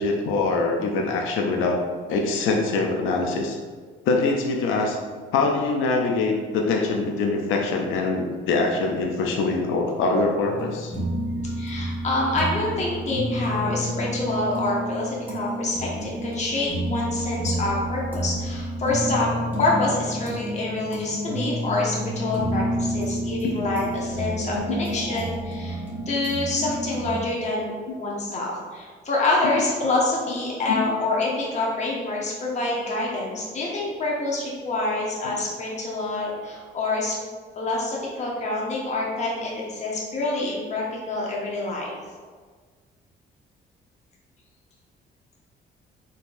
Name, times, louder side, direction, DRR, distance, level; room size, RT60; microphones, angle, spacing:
voice 1, 0.0-1.8 2.1-3.6 4.1-5.0 5.3-10.9 23.4-23.6 24.7-24.8 27.9-28.0 29.8-29.9 30.7-30.9 35.3-35.4, left 3 dB, 90° left, 1 dB, 0.4 m, -24 dB
sound 1, 10.4-27.2, equal, 10° right, 1.0 m, -29 dB
voice 2, 11.6-25.8 26.1-27.7 28.0-37.2 37.6-41.9, left 2 dB, 35° left, -3 dB, 0.8 m, -26 dB
3.7 x 2.6 x 2.5 m, 1.5 s
cardioid pair, 90°, 20 cm